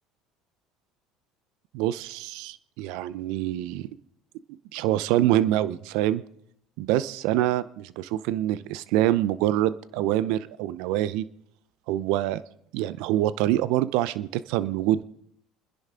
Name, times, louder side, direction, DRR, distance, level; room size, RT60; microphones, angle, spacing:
voice 1, 1.7-3.9 4.7-6.2 6.8-11.2 11.9-12.4 12.7-15.0, right 13 dB, 75° right, 17 dB, 0.6 m, -25 dB
28.5 x 10.5 x 3.8 m, 0.69 s
supercardioid pair, 95°, 0 cm